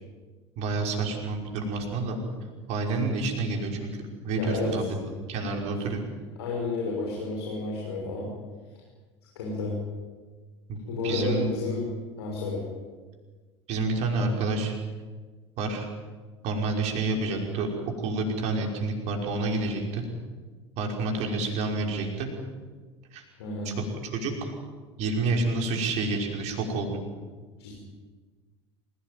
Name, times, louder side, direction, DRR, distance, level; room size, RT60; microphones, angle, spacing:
voice 1, 0.6-2.2 2.7-3.9 4.2-6.0 10.7-10.8 11.0-11.5 13.7-14.7 15.6-15.9 16.4-20.0 20.8-22.3 23.1-23.2 23.6-24.5 25.0-27.0, right 3 dB, 50° right, 2 dB, 5.5 m, -29 dB
voice 2, 4.3-4.9 5.7-5.8 6.4-8.3 9.3-9.8 10.9-11.8 12.2-12.6 23.4-23.8 27.6-27.7, left 3 dB, 65° left, -2 dB, 6.3 m, -31 dB
27.5 x 17.5 x 9.5 m, 1.4 s
figure-of-eight pair, 70°, 15 cm